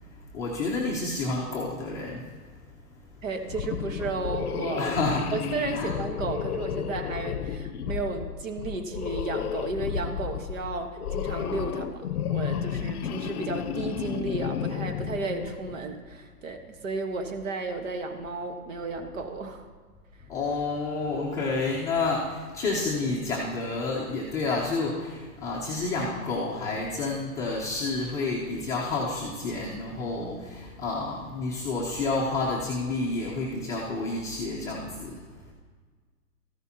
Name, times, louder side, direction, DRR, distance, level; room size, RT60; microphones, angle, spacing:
voice 1, 0.3-2.3 4.8-5.3 5.7-5.9 20.3-35.3, left 3 dB, 5° left, -7 dB, 0.6 m, -29 dB
voice 2, 3.2-4.9 5.3-19.7, right 3 dB, 55° right, 6 dB, 1.4 m, -33 dB
sound 1, 3.5-15.9, left 8 dB, 70° left, 0.7 m, -32 dB
14.0 x 10.5 x 2.8 m, 1.5 s
hypercardioid pair, 145°, 47 cm